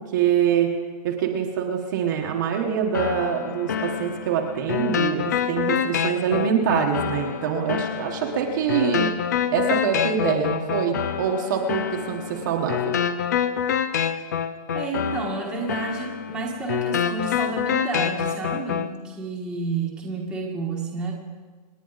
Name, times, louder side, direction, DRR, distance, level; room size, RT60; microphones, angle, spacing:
voice 1, 0.1-0.7 1.0-9.1 9.5-13.0, right 7 dB, 30° right, 1 dB, 1.2 m, -24 dB
sound 1, 2.9-18.9, left 8 dB, 25° left, 0.4 m, -27 dB
voice 2, 14.7-21.2, right 4 dB, 5° right, -3 dB, 1.3 m, -30 dB
27.5 x 10.0 x 4.0 m, 1.5 s
hypercardioid pair, 175°, 21 cm